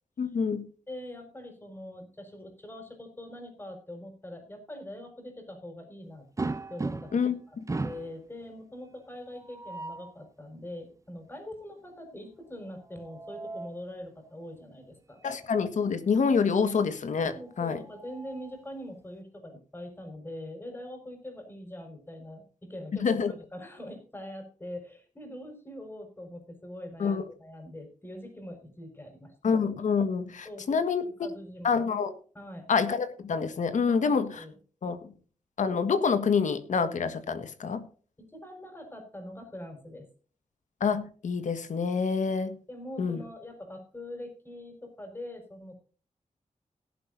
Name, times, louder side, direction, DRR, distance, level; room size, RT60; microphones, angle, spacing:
voice 1, 0.2-0.7 7.1-7.7 15.2-17.8 23.0-23.3 27.0-27.2 29.4-31.0 31.6-32.1 32.7-34.4 34.8-35.0 35.6-37.8 40.8-42.6 43.0-43.2, left 5 dB, 75° left, 10 dB, 1.6 m, -27 dB
voice 2, 0.9-6.3 6.7-7.6 7.8-15.2 17.3-29.3 30.4-31.8 32.3-32.7 33.9-34.6 38.2-40.1 42.7-45.8, left 1 dB, 15° left, 4 dB, 4.6 m, -43 dB
sound 1, 6.4-7.3 7.7-8.2 9.4-10.1 12.8-13.8 15.2-15.4 15.8-15.9 17.4-18.7, right 3 dB, 25° right, 0.9 m, -37 dB
17.5 x 11.5 x 2.6 m, 0.41 s
wide cardioid pair, 135°, 13 cm